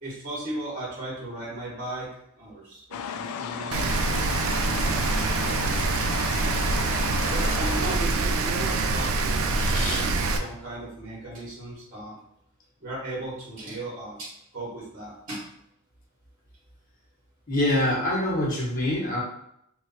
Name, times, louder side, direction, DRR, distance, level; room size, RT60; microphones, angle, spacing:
voice 1, 0.0-2.1 2.4-3.9 4.8-5.3 7.3-12.2 12.8-15.4, right 1 dB, 40° right, -5 dB, 1.0 m, -36 dB
sound 1, 2.9-8.0, left 7 dB, 80° left, 0.3 m, -34 dB
Rain, 3.7-10.4, right 3 dB, 75° right, 0.4 m, -25 dB
voice 2, 9.5-10.1 17.5-19.2, left 1 dB, 40° left, -4 dB, 1.0 m, -25 dB
3.1 x 2.3 x 3.9 m, 0.75 s
head